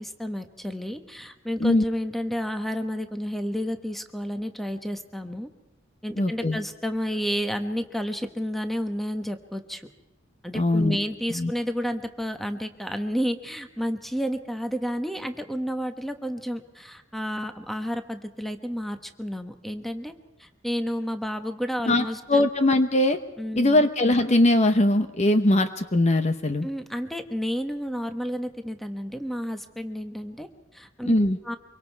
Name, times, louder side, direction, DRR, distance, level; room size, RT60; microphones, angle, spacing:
voice 1, 0.0-5.5 6.0-9.9 10.4-20.1 20.4-22.4 23.4-23.8 26.6-30.5 30.7-31.1 31.4-31.6, equal, ahead, 7 dB, 1.2 m, -31 dB
voice 2, 6.2-6.6 10.5-11.0 11.3-11.5 21.9-23.2 23.6-26.7 31.1-31.4, left 1 dB, 35° left, 9 dB, 0.9 m, -21 dB
25.0 x 23.5 x 4.6 m, 0.98 s
head